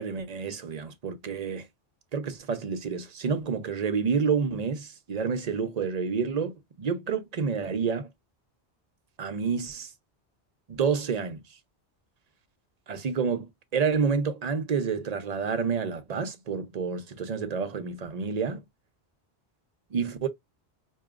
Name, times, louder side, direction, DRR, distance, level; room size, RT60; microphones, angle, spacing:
voice 1, 0.0-1.7 2.1-6.5 6.8-8.1 9.2-9.9 10.7-11.4 12.9-18.6 19.9-20.3, right 5 dB, 50° right, 0.6 m, -29 dB
4.7 x 2.8 x 2.4 m
omnidirectional pair, 1.1 m